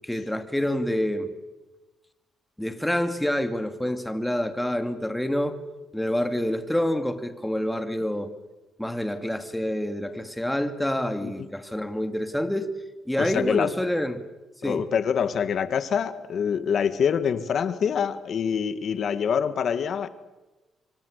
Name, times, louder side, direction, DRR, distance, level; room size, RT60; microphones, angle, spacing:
voice 1, 0.0-1.3 2.6-5.6 5.9-8.3 8.8-12.7 13.1-14.2 14.6-14.8, left 1 dB, 5° left, 2.4 m, -27 dB
voice 2, 13.2-13.7 14.6-20.1, left 7 dB, 60° left, 1.8 m, -25 dB
27.0 x 25.0 x 6.6 m
cardioid pair, 90°, 0 cm